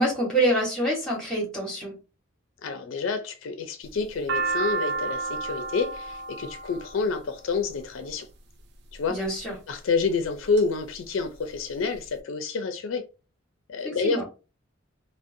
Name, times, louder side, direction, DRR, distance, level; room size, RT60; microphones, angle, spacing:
voice 1, 0.0-2.0 9.1-9.6 14.0-14.2, right 1 dB, 5° left, 1.1 m, -26 dB
voice 2, 2.6-8.3 8.9-9.2 9.7-13.0 13.7-14.2, left 4 dB, 75° left, 0.4 m, -28 dB
sound 1, 3.8-8.1 8.9-9.4 10.0-10.6 11.0-11.1 11.2-12.1, right 4 dB, 55° right, 0.4 m, -31 dB
2.5 x 2.0 x 2.5 m
head